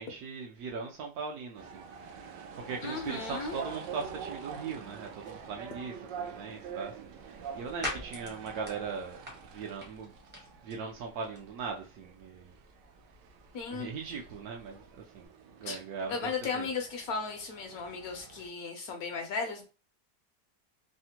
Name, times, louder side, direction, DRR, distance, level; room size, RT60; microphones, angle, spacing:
voice 1, 0.0-2.3 2.6-6.9 7.5-9.2 9.5-10.1 10.6-12.5 13.7-14.9 15.1-15.3 15.6-16.2 16.5-16.7, right 5 dB, 70° right, 1.0 m, -39 dB
sound 1, 1.6-18.5, right 6 dB, 85° right, 1.2 m, -46 dB
voice 2, 2.8-3.6 13.5-13.9 15.6-15.8 16.1-19.6, left 4 dB, 70° left, 1.0 m, -35 dB
sound 2, 6.6-15.3, left 1 dB, 10° right, 0.5 m, -47 dB
3.3 x 2.1 x 2.8 m
omnidirectional pair, 1.9 m